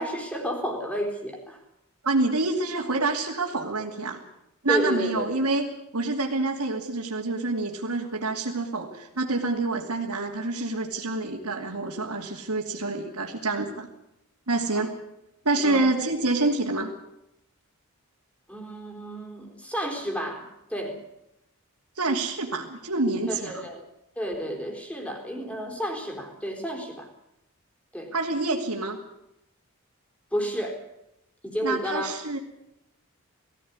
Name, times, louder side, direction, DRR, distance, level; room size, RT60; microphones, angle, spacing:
voice 1, 0.0-1.6 4.7-5.4 14.8-14.9 15.6-15.9 18.5-21.0 23.3-23.8 24.2-27.1 27.9-28.1 30.3-30.8 31.4-32.1, equal, 5° left, 2 dB, 3.9 m, -31 dB
voice 2, 2.0-4.2 4.6-5.7 5.9-13.9 14.5-14.9 15.4-16.9 21.9-23.7 28.1-29.0 31.6-32.4, right 2 dB, 85° right, -3 dB, 2.7 m, -27 dB
20.0 x 16.0 x 9.7 m, 0.85 s
head